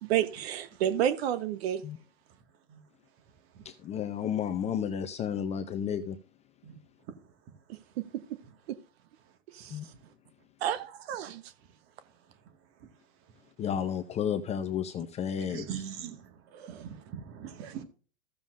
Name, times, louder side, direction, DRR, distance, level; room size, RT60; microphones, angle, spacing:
voice 1, 0.0-1.8 7.7-7.8 8.1-8.2 8.7-8.8 9.5-9.8 10.6-11.5 16.6-16.8, right 10 dB, 55° right, 1.0 m, -30 dB
voice 2, 3.6-6.2 9.7-9.9 13.6-15.6, left 8 dB, 20° left, 0.6 m, -32 dB
voice 3, 15.5-16.2 16.7-17.8, right 8 dB, 35° right, 1.9 m, -40 dB
15.0 x 7.1 x 2.5 m
hypercardioid pair, 125°, 37 cm